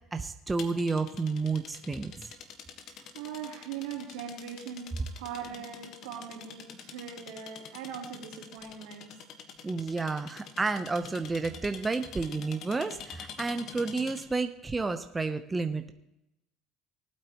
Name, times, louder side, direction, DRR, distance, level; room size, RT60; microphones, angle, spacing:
voice 1, 0.1-2.3 9.6-15.9, right 3 dB, 20° right, 8 dB, 0.8 m, -31 dB
sound 1, 0.6-14.4, left 6 dB, 60° left, 1.5 m, -47 dB
voice 2, 2.9-9.1, right 8 dB, 90° right, -2 dB, 3.5 m, -41 dB
19.0 x 8.6 x 3.1 m, 0.89 s
supercardioid pair, 95°, 0 cm